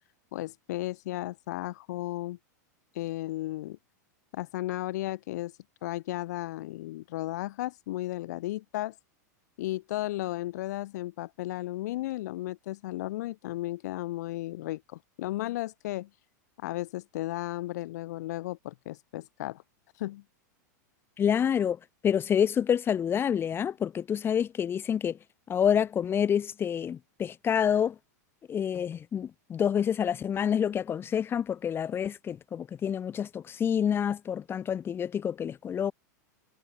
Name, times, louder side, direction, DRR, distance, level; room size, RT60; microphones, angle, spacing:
voice 1, 0.3-2.4 2.9-3.8 4.3-5.5 5.8-9.0 9.6-16.1 16.6-19.6 20.0-20.2, left 16 dB, 70° left, 1.1 m, -34 dB
voice 2, 21.2-25.2 25.5-28.0 28.5-35.9, left 8 dB, 25° left, 1.6 m, -28 dB
hypercardioid pair, 125°, 10 cm